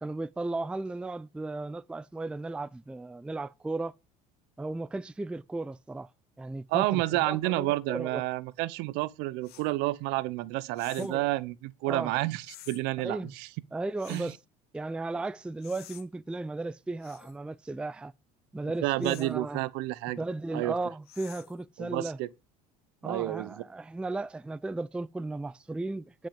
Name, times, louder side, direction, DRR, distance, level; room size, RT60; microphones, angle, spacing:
voice 1, 0.0-3.9 4.6-6.1 6.4-8.2 11.0-11.3 11.9-12.1 13.0-13.3 13.7-14.4 14.7-18.1 18.5-19.6 20.2-22.2 23.0-26.3, right 2 dB, 5° right, 0.4 m, -35 dB
voice 2, 6.7-13.5 14.1-14.3 18.8-20.2 20.5-20.7 21.8-22.3 23.0-23.5, right 18 dB, 70° right, 0.7 m, -30 dB
sound 1, 9.4-9.7 10.7-11.2 12.4-12.8 14.0-14.4 15.6-16.0 17.0-17.4 19.0-19.3 21.1-21.6, left 14 dB, 60° left, 1.2 m, -50 dB
10.5 x 5.4 x 5.2 m
supercardioid pair, 85°, 18 cm